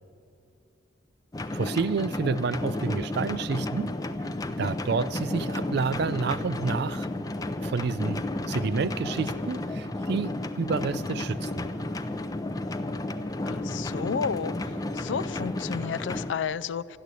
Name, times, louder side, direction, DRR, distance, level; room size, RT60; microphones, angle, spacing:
sound 1, 1.3-16.3, left 2 dB, 20° left, 0.5 m, -32 dB
voice 1, 1.5-3.9 4.6-7.1 7.6-11.7, right 4 dB, 60° right, 0.4 m, -29 dB
voice 2, 13.5-14.5 14.9-17.0, left 6 dB, 70° left, 0.4 m, -31 dB
13.5 x 10.5 x 8.2 m
head